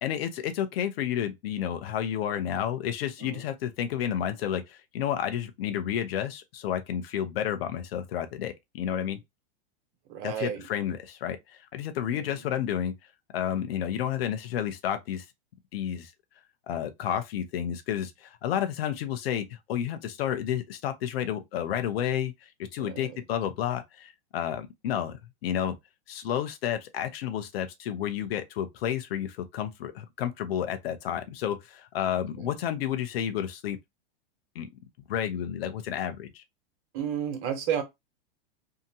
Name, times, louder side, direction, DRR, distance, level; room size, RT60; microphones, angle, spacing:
voice 1, 0.0-9.2 10.2-12.9 13.3-15.3 15.7-16.1 16.7-25.7 26.1-33.8 34.5-34.7 35.1-36.4, left 10 dB, 75° left, 0.7 m, -31 dB
voice 2, 10.1-10.7 12.1-12.5 22.8-23.2 32.4-32.5 36.9-37.8, right 9 dB, 45° right, 1.1 m, -32 dB
2.8 x 2.2 x 2.7 m
hypercardioid pair, 125°, 31 cm